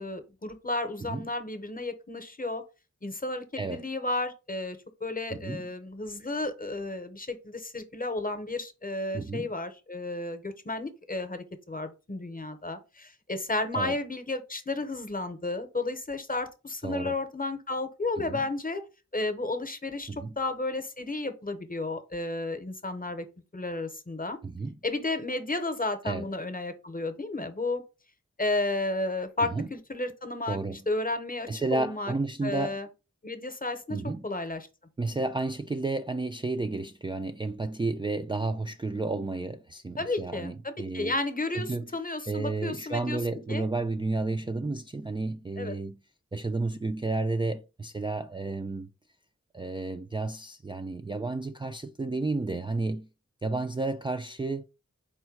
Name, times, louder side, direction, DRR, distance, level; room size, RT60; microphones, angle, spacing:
voice 1, 0.0-2.6 3.0-18.8 19.1-20.1 20.4-23.3 23.5-24.4 24.8-27.8 28.4-32.1 32.4-32.9 33.2-34.7 40.0-43.2 43.5-43.7 45.6-45.7, left 2 dB, 30° left, 0.8 m, -32 dB
voice 2, 5.3-5.6 9.1-9.5 13.7-14.0 16.8-17.2 18.2-18.4 20.1-20.4 24.4-24.7 26.1-26.3 29.4-29.7 30.5-30.8 31.5-32.8 33.9-34.3 35.0-41.1 41.5-41.9 42.3-46.0 46.3-48.9 49.5-53.1 53.4-54.7, right 3 dB, 15° right, 0.3 m, -32 dB
4.5 x 2.2 x 4.5 m
wide cardioid pair, 50°, 29 cm